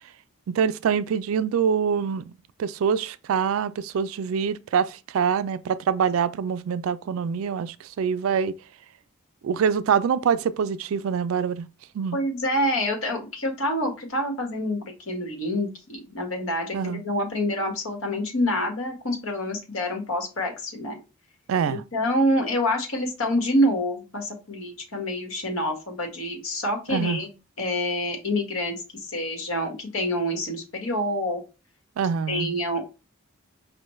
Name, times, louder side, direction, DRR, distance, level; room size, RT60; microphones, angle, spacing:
voice 1, 0.5-2.3 2.6-8.5 9.4-11.7 11.9-12.2 16.7-17.0 21.5-21.8 26.9-27.2 32.0-32.5, right 7 dB, 75° right, 0.3 m, -25 dB
voice 2, 12.1-14.8 15.1-21.0 21.7-27.3 27.6-31.4 32.3-32.9, left 1 dB, 85° left, 1.4 m, -27 dB
5.0 x 2.3 x 3.1 m
head